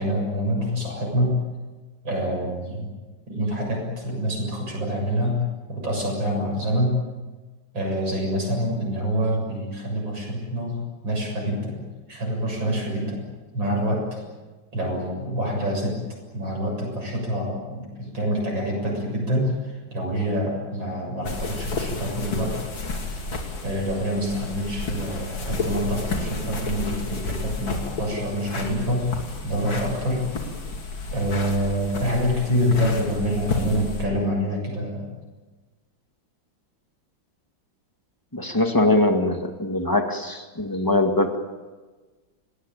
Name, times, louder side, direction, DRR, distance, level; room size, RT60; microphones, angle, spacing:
voice 1, 0.0-1.4 2.0-2.9 3.3-7.0 7.7-13.2 13.5-14.2 14.7-16.0 16.3-22.7 23.6-29.2 29.4-30.3 31.1-35.1, equal, 75° right, 0 dB, 7.9 m, -26 dB
sound 1, 21.2-34.1, left 3 dB, 85° left, 3.9 m, -31 dB
voice 2, 38.3-41.4, left 2 dB, 10° left, 5 dB, 2.0 m, -22 dB
26.5 x 19.5 x 8.9 m, 1.3 s
omnidirectional pair, 2.1 m